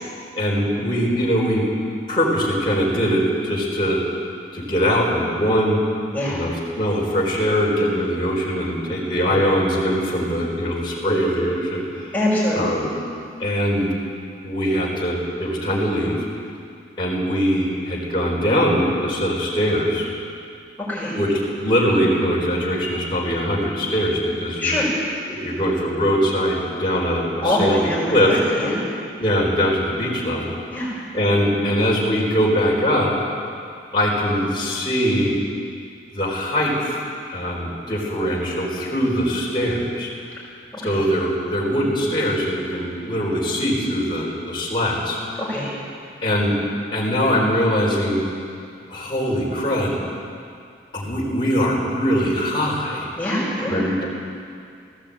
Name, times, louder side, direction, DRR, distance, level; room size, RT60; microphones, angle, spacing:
voice 1, 0.3-1.6 2.1-4.0 4.5-5.8 6.3-12.1 12.5-12.9 13.4-13.9 14.4-16.2 17.0-20.1 21.2-21.3 21.6-24.8 25.3-28.3 29.2-30.5 31.1-33.1 33.9-35.3 36.1-37.0 37.3-40.1 40.8-45.2 46.2-46.6 46.9-48.2 48.9-50.0 50.9-53.1 53.7-54.1, equal, 25° left, -5 dB, 4.3 m, -22 dB
voice 2, 12.1-12.7 20.8-21.2 24.6-24.9 27.4-28.9 30.7-30.9 40.8-41.0 45.4-45.7 53.2-53.9, left 1 dB, 10° left, -11 dB, 5.6 m, -24 dB
18.5 x 16.5 x 8.7 m, 2.3 s
head